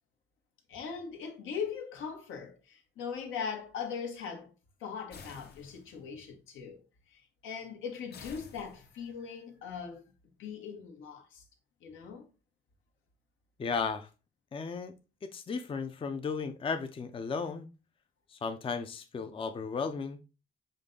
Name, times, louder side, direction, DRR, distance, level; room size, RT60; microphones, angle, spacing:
voice 1, 0.7-4.5 4.8-6.8 7.1-10.0 10.4-11.4 11.8-12.3, left 6 dB, 85° left, 1.1 m, -40 dB
sound 1, 5.1-6.1 8.1-9.2, left 5 dB, 55° left, 0.8 m, -51 dB
voice 2, 13.6-14.1 14.5-14.9 15.2-17.7 18.3-20.2, left 5 dB, 25° left, 0.5 m, -35 dB
5.2 x 2.2 x 3.8 m
cardioid pair, 90°, 20 cm